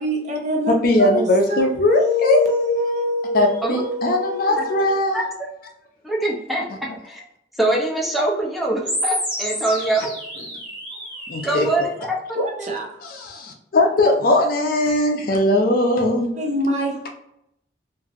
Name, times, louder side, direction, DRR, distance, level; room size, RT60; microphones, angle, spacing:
voice 1, 0.0-4.9 12.3-12.9 16.4-17.1, left 1 dB, 40° right, 0 dB, 0.6 m, -25 dB
voice 2, 0.7-2.4 3.3-5.2 11.3-11.7 13.0-16.3, left 1 dB, 55° left, 2 dB, 0.5 m, -19 dB
voice 3, 4.2-4.6 5.1-5.2 6.0-7.2 7.6-10.1 11.4-12.2 12.6-12.8, right 1 dB, ahead, -3 dB, 0.6 m, -24 dB
sound 1, 8.9-11.9, equal, 25° right, 1.3 m, -29 dB
2.9 x 2.5 x 2.4 m, 0.79 s
head